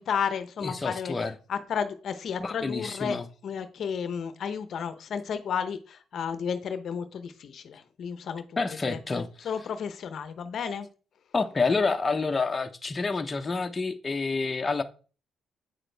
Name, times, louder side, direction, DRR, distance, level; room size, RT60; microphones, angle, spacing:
voice 1, 0.0-1.1 1.5-3.2 3.4-8.4 8.9-10.9, left 7 dB, 60° left, 0.8 m, -32 dB
voice 2, 0.6-1.3 2.4-3.3 8.6-9.5 11.3-14.8, left 4 dB, 25° left, 0.9 m, -28 dB
8.2 x 6.0 x 3.4 m
cardioid pair, 90°, 0 cm